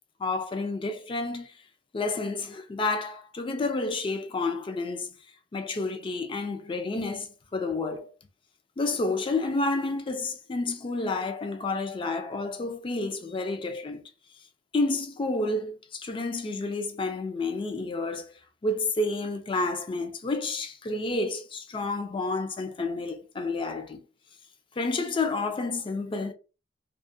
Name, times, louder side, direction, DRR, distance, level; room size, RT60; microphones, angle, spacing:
voice 1, 0.2-1.5 1.9-5.1 5.5-8.1 8.8-14.1 14.7-18.3 18.6-24.0 24.8-26.3, left 3 dB, 30° left, 0.4 m, -30 dB
2.4 x 2.1 x 2.5 m
head